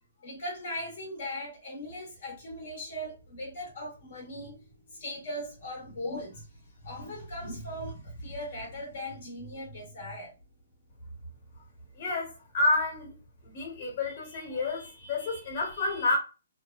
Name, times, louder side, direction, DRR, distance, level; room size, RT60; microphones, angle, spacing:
voice 1, 0.2-10.3, equal, 55° left, 0.9 m, -39 dB
voice 2, 12.0-13.2 13.4-16.2, left 2 dB, 35° left, 1.1 m, -29 dB
2.6 x 2.1 x 2.3 m
hypercardioid pair, 160°, 0 cm